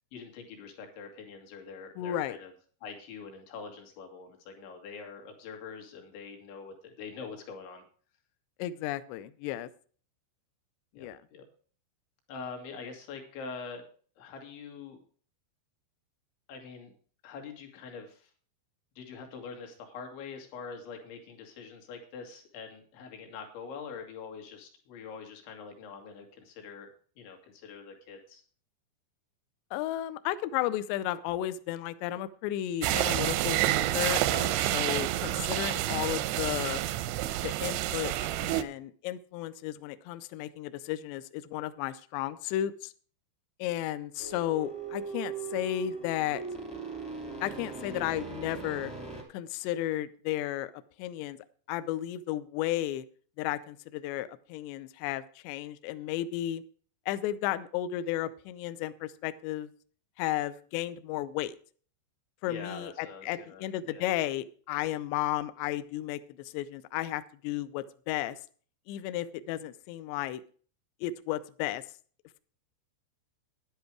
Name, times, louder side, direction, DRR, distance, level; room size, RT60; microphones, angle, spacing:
voice 1, 0.1-2.5 2.8-7.8 11.0-11.4 12.3-13.9 14.2-15.0 16.5-16.9 17.2-18.3 19.0-26.9 27.2-28.4 62.5-64.1, left 5 dB, 70° left, 3 dB, 4.4 m, -44 dB
voice 2, 2.0-2.4 8.6-9.7 11.0-11.2 29.7-36.8 37.4-42.9 43.6-46.4 47.4-48.9 49.3-50.7 51.0-51.4 51.7-53.1 53.4-56.6 57.1-59.7 60.2-61.5 62.4-68.4 68.9-70.4 71.0-71.8, left 13 dB, 85° left, 13 dB, 2.5 m, -33 dB
sound 1, 32.8-38.6, right 14 dB, 85° right, 2.6 m, -29 dB
sound 2, 44.2-49.2, right 4 dB, 5° right, 1.0 m, -40 dB
10.5 x 10.5 x 4.8 m, 0.43 s
omnidirectional pair, 5.7 m